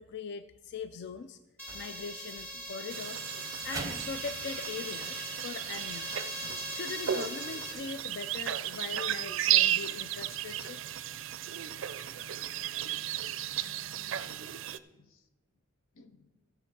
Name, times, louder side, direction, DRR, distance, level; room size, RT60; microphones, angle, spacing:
voice 1, 0.0-1.4 1.7-3.3 3.6-10.8, left 5 dB, 60° left, 11 dB, 0.4 m, -41 dB
sound 1, 1.6-7.7, equal, 5° left, 2.0 m, -41 dB
sound 2, 1.7-7.1, right 3 dB, 15° right, 0.6 m, -47 dB
sound 3, 2.9-14.8, right 11 dB, 70° right, 0.4 m, -34 dB
voice 2, 12.9-14.4 15.0-15.1 16.0-16.2, left 4 dB, 90° left, 10 dB, 0.8 m, -58 dB
15.0 x 6.7 x 4.7 m, 1.1 s
head